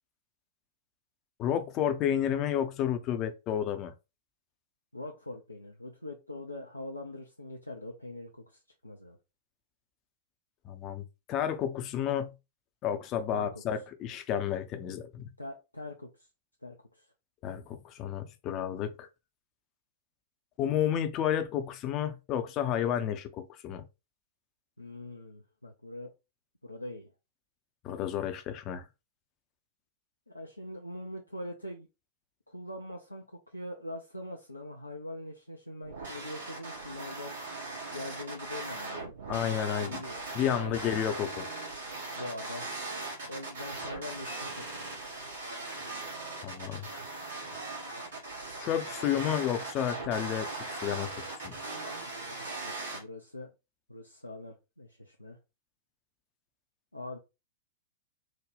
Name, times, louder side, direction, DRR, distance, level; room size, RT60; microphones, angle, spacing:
voice 1, 1.4-3.9 10.6-12.3 12.8-15.3 17.4-19.1 20.6-23.8 27.8-28.8 39.3-40.0 40.3-41.5 46.4-46.9 48.6-51.5, left 9 dB, 35° left, 0.5 m, -31 dB
voice 2, 4.9-9.2 13.3-13.6 15.4-16.3 16.6-17.1 24.8-26.1 26.6-27.1 30.3-31.9 32.5-37.4 37.9-39.5 39.8-40.2 40.5-40.8 42.1-42.7 43.3-44.9 52.6-53.5 53.9-55.4 56.9-57.2, left 1 dB, 85° left, 0.5 m, -43 dB
sound 1, 35.8-53.0, right 2 dB, 60° right, 1.4 m, -39 dB
3.7 x 2.1 x 3.3 m
figure-of-eight pair, 100°, 0 cm